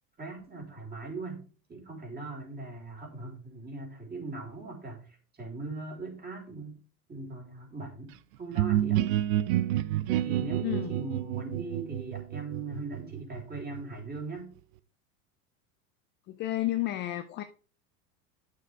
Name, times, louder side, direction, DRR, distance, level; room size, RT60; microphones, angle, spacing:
voice 1, 0.2-1.4 1.7-6.8 7.1-9.0 10.1-14.5, right 3 dB, 20° right, 3.5 m, -40 dB
sound 1, 8.5-14.2, right 13 dB, 55° right, 0.7 m, -30 dB
voice 2, 10.6-10.9 16.3-17.4, left 15 dB, 25° left, 0.3 m, -31 dB
9.1 x 6.7 x 3.3 m
hypercardioid pair, 100°, 48 cm